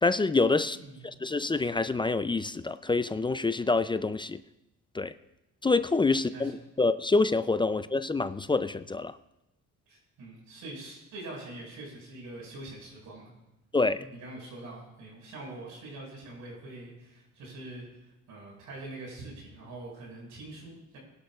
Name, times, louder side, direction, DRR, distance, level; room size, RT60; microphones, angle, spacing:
voice 1, 0.0-0.8 1.0-4.4 4.9-5.1 5.6-6.5 6.8-9.2 13.7-14.1, left 3 dB, 15° left, 0.4 m, -26 dB
voice 2, 0.7-1.2 6.1-6.6 9.9-13.3 13.9-21.0, right 2 dB, 85° right, 5.4 m, -44 dB
21.0 x 11.5 x 2.4 m
cardioid pair, 90°, 30 cm